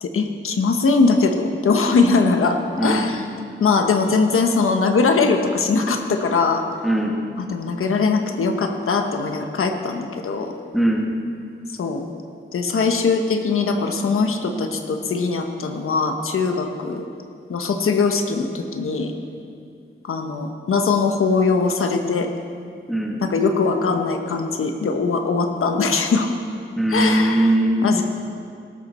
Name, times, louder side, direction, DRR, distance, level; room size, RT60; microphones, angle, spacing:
voice 1, 0.0-3.2 3.6-6.6 7.5-10.5 11.8-12.1 12.5-17.0 17.5-19.1 20.0-22.3 23.2-26.3 26.9-27.5 27.8-28.0, left 4 dB, 90° left, 5 dB, 1.1 m, -21 dB
voice 2, 2.8-3.1 6.8-7.1 10.7-11.1 22.9-23.2 26.8-27.8, right 1 dB, ahead, -1 dB, 2.0 m, -20 dB
17.5 x 13.5 x 4.3 m, 2.4 s
wide cardioid pair, 100°, 21 cm